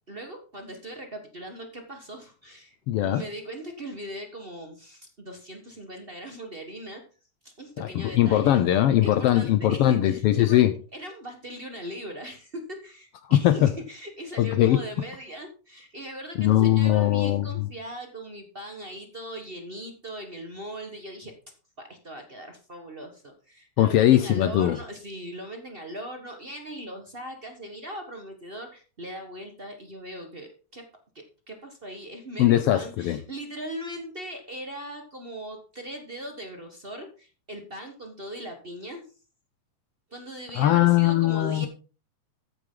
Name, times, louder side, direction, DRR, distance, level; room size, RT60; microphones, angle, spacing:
voice 1, 0.1-7.0 7.4-8.6 9.0-10.6 10.9-21.3 21.8-30.8 31.1-39.0 40.1-41.7, right 1 dB, 60° right, 4 dB, 0.6 m, -39 dB
voice 2, 2.9-3.2 7.8-10.7 13.3-13.7 14.4-14.8 16.4-17.7 23.8-24.8 32.4-33.2 40.6-41.7, left 13 dB, 80° left, 11 dB, 1.3 m, -20 dB
14.5 x 8.2 x 3.8 m, 0.35 s
omnidirectional pair, 3.5 m